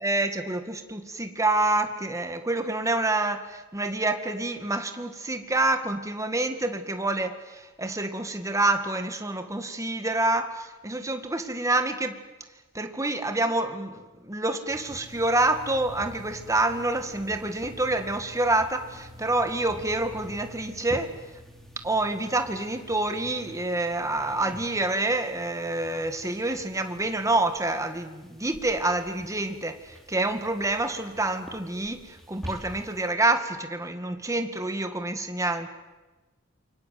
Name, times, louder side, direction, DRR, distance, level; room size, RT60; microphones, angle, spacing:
voice 1, 0.0-12.2 12.7-21.2 21.8-35.7, right 2 dB, 15° right, 7 dB, 2.0 m, -27 dB
sound 1, 14.7-33.1, equal, ahead, 3.6 m, -46 dB
28.0 x 24.0 x 7.9 m, 1.2 s
head